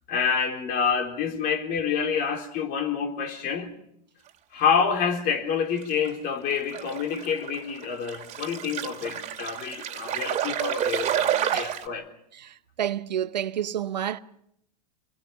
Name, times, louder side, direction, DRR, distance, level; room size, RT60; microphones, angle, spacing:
voice 1, 0.1-3.7 4.5-12.1, left 6 dB, 45° left, 3.9 m, -27 dB
sound 1, 5.8-6.1 6.7-11.9, right 10 dB, 35° right, 2.4 m, -29 dB
voice 2, 12.4-14.2, right 10 dB, 90° right, 0.9 m, -30 dB
27.5 x 22.0 x 5.9 m
hypercardioid pair, 100°, 21 cm